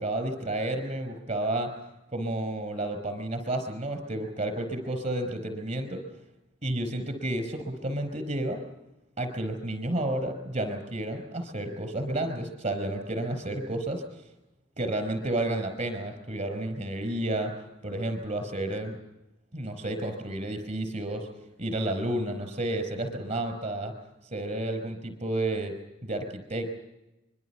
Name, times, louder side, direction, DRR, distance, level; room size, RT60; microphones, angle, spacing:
voice 1, 0.0-1.7 2.1-6.0 6.6-8.6 9.2-14.0 14.8-17.5 17.8-19.0 19.5-21.3 21.6-23.9 24.3-25.7 26.0-26.8, right 1 dB, 35° right, 8 dB, 5.0 m, -31 dB
25.0 x 23.5 x 5.9 m, 0.96 s
head